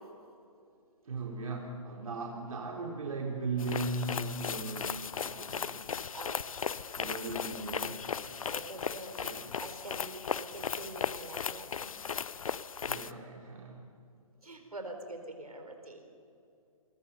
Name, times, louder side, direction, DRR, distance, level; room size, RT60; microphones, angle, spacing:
voice 1, 1.0-5.9 7.0-8.0 9.2-9.5 12.8-13.9, right 3 dB, 70° right, -1 dB, 3.7 m, -37 dB
sound 1, 3.6-13.1, left 7 dB, 65° left, 0.8 m, -37 dB
voice 2, 8.5-9.2 9.6-11.9 14.4-16.0, right 2 dB, 90° right, 4 dB, 4.6 m, -45 dB
29.0 x 23.0 x 5.6 m, 2.5 s
figure-of-eight pair, 140°, 19 cm